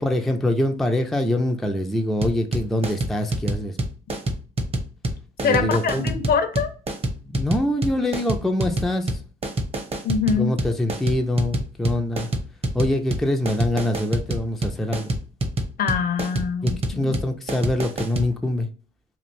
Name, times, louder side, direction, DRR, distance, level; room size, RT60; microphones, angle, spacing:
voice 1, 0.0-3.8 5.4-6.2 7.2-9.1 10.3-12.3 12.7-15.1 16.6-18.7, left 1 dB, ahead, 0.4 m, -24 dB
sound 1, 2.2-18.3, right 1 dB, 30° right, 0.8 m, -26 dB
voice 2, 5.4-6.7 10.0-10.5 15.8-17.2, left 6 dB, 50° left, 0.6 m, -23 dB
3.1 x 2.5 x 2.6 m
supercardioid pair, 80°, 19 cm